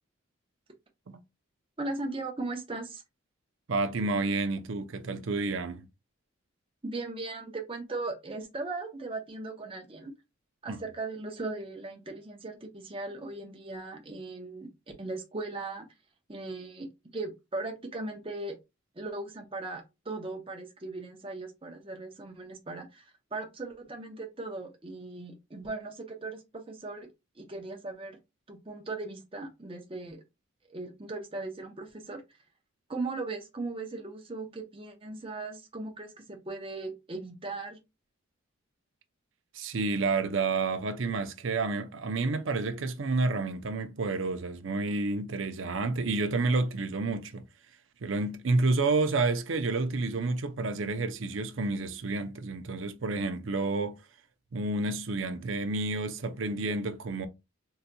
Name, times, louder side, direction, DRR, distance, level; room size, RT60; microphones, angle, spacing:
voice 1, 1.8-3.0 6.8-10.1 10.6-14.7 15.0-15.9 16.3-18.6 18.9-27.1 27.4-28.2 28.5-30.2 30.7-32.2 32.9-37.8, right 3 dB, 25° right, 0.7 m, -38 dB
voice 2, 3.7-5.9 10.7-10.8 39.5-47.4 48.0-54.0 54.5-57.3, right 3 dB, 70° right, 0.5 m, -30 dB
3.8 x 2.8 x 2.2 m
head